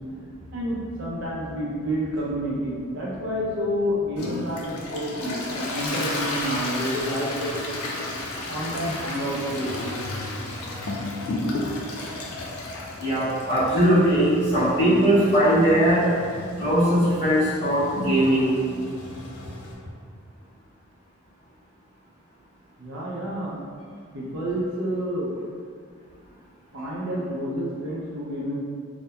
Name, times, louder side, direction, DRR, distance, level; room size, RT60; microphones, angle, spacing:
voice 1, 0.5-7.6 8.5-9.9 22.8-23.6 24.1-25.3 26.7-28.5, equal, 60° right, -6 dB, 0.5 m, -29 dB
Toilet flush, 4.2-19.7, left 2 dB, 90° left, 0.4 m, -33 dB
voice 2, 13.0-16.1 16.6-18.5, right 1 dB, 25° left, -16 dB, 1.4 m, -20 dB
2.7 x 2.0 x 2.2 m, 2.1 s
head